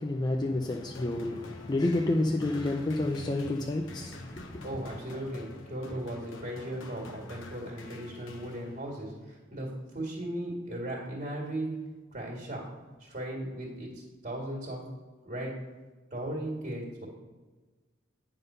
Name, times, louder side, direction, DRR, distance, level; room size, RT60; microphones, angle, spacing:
voice 1, 0.0-4.7, left 2 dB, 20° left, 2 dB, 0.4 m, -30 dB
sound 1, 0.7-9.1, left 2 dB, 85° left, 0.9 m, -48 dB
voice 2, 4.6-11.8 12.1-14.8 15.2-15.5 16.1-17.1, right 1 dB, 40° right, -2 dB, 1.8 m, -37 dB
9.4 x 3.8 x 5.5 m, 1.3 s
head